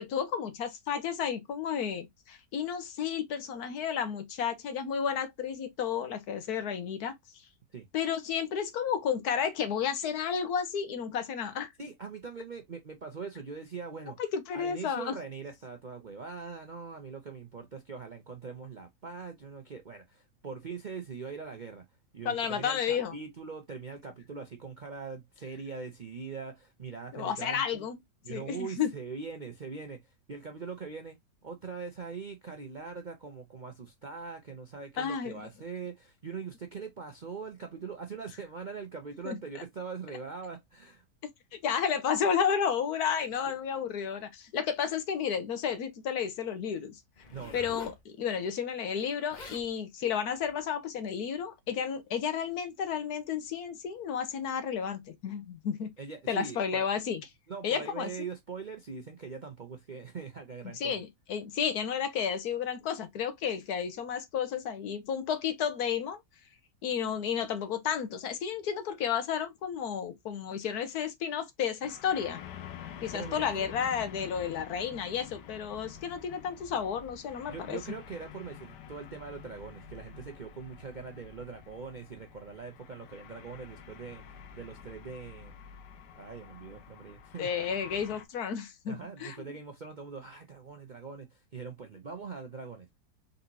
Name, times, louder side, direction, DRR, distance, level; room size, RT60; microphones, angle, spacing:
voice 1, 0.0-7.1 7.9-11.7 14.2-15.2 22.2-23.1 27.1-28.0 28.3-28.9 35.0-35.4 39.2-39.4 41.5-47.0 47.5-47.9 48.2-55.9 56.3-57.2 57.6-58.1 60.8-66.2 66.8-72.4 73.0-77.8 87.4-89.5, left 7 dB, 70° left, 1.3 m, -32 dB
voice 2, 11.8-14.2 14.5-21.8 22.1-27.9 28.2-41.0 47.3-47.7 56.0-56.9 57.5-60.9 73.1-73.7 77.5-85.5 86.1-87.5 88.9-93.0, right 5 dB, 50° right, 0.5 m, -42 dB
Zipper (clothing), 47.2-48.0 49.0-49.1 49.3-49.7 50.4-50.6, left 3 dB, 30° left, 1.0 m, -46 dB
sound 1, 71.8-88.2, left 8 dB, 85° left, 1.3 m, -48 dB
4.1 x 4.0 x 2.6 m
omnidirectional pair, 1.8 m